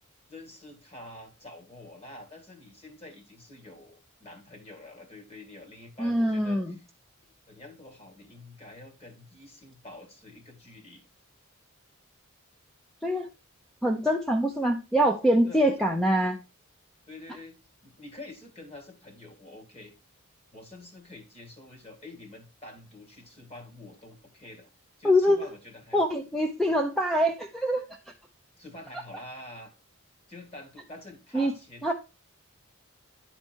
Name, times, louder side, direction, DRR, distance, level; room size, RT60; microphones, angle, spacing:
voice 1, 0.3-6.8 7.5-11.1 15.5-15.9 17.1-17.6 17.8-19.9 20.5-24.7 25.0-26.0 28.6-29.7 30.3-31.9, left 1 dB, 30° left, 3 dB, 2.2 m, -47 dB
voice 2, 6.0-6.8 13.0-13.3 13.8-16.4 25.0-25.4 25.9-27.9 31.3-31.5 31.8-31.9, equal, ahead, 3 dB, 0.6 m, -24 dB
11.0 x 4.4 x 4.5 m, 0.29 s
head